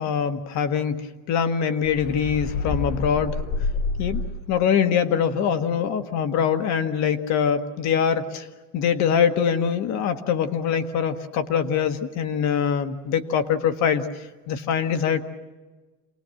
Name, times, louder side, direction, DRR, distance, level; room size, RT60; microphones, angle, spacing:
voice 1, 0.0-3.4 4.0-4.2 4.5-8.5 8.7-14.1 14.5-15.2, left 7 dB, 40° left, 8 dB, 1.5 m, -23 dB
sound 1, 1.8-4.6, left 3 dB, 20° left, 0.7 m, -28 dB
27.5 x 19.0 x 7.7 m, 1.2 s
supercardioid pair, 155°, 44 cm